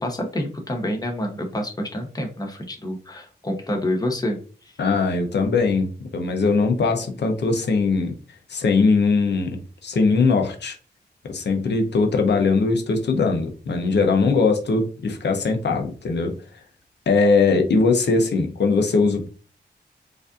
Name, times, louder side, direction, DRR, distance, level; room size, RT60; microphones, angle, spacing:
voice 1, 0.0-4.4, left 1 dB, 20° left, 3 dB, 0.8 m, -27 dB
voice 2, 4.8-8.1 8.5-10.8 11.2-16.3 17.1-19.3, left 4 dB, 75° left, 4 dB, 0.7 m, -20 dB
4.8 x 2.6 x 2.5 m, 0.38 s
wide cardioid pair, 100°, 18 cm